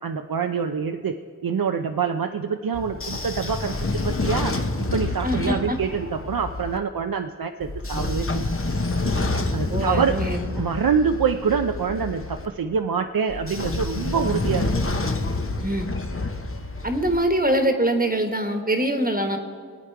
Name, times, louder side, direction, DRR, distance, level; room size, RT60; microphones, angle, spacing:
voice 1, 0.0-8.6 9.5-10.2 10.5-14.7, right 6 dB, 60° right, 6 dB, 0.6 m, -26 dB
Train / Sliding door, 2.7-6.8 7.6-12.4 13.3-17.2, left 2 dB, 35° left, 0.9 m, -28 dB
voice 2, 5.2-5.8 9.7-10.5 15.6-15.9 16.8-19.4, right 1 dB, 20° right, 5 dB, 1.3 m, -23 dB
23.5 x 8.9 x 4.7 m, 2.1 s
wide cardioid pair, 60°, 39 cm